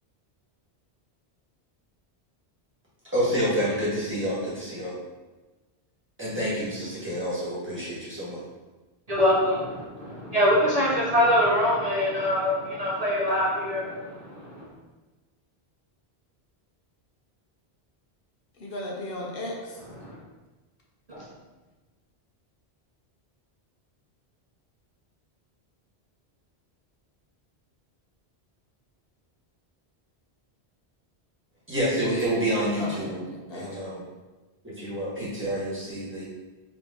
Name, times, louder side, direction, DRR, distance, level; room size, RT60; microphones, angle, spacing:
voice 1, 3.1-5.0 6.2-8.4 31.7-33.2 33.5-34.0 34.6-36.2, equal, 10° right, -9 dB, 1.3 m, -28 dB
voice 2, 9.1-14.7 20.0-20.2 21.1-21.2, equal, 40° right, -6 dB, 0.8 m, -24 dB
voice 3, 18.5-19.8 32.8-34.0, left 1 dB, 65° left, -2 dB, 0.9 m, -36 dB
4.1 x 2.9 x 3.6 m, 1.2 s
omnidirectional pair, 1.1 m